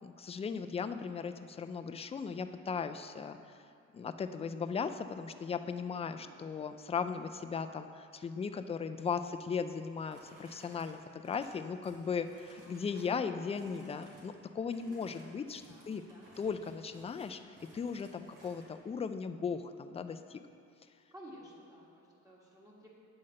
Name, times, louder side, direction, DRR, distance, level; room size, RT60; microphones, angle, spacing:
voice 1, 0.0-3.4 3.9-16.0 16.4-20.4, left 6 dB, 20° left, 9 dB, 0.3 m, -37 dB
voice 2, 5.8-6.3 14.6-15.1 15.6-16.3 21.1-22.9, equal, 10° right, -5 dB, 1.6 m, -55 dB
sound 1, 9.7-13.2 13.5-14.3 14.6-18.7, right 1 dB, 80° right, 1.9 m, -59 dB
8.8 x 3.9 x 6.4 m, 2.4 s
cardioid pair, 90°, 30 cm